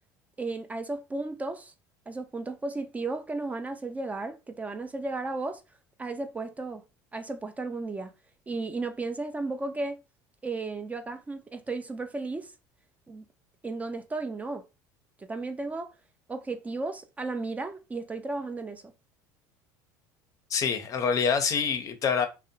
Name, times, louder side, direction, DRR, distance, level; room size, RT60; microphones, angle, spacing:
voice 1, 0.4-1.7 2.1-5.6 6.0-6.8 7.1-8.1 8.5-10.0 10.4-12.5 13.1-13.2 13.6-14.7 15.2-15.9 16.3-18.9, right 3 dB, 15° right, 0.3 m, -34 dB
voice 2, 20.5-22.3, left 6 dB, 40° left, 0.5 m, -26 dB
2.6 x 2.0 x 2.6 m
supercardioid pair, 95°, 9 cm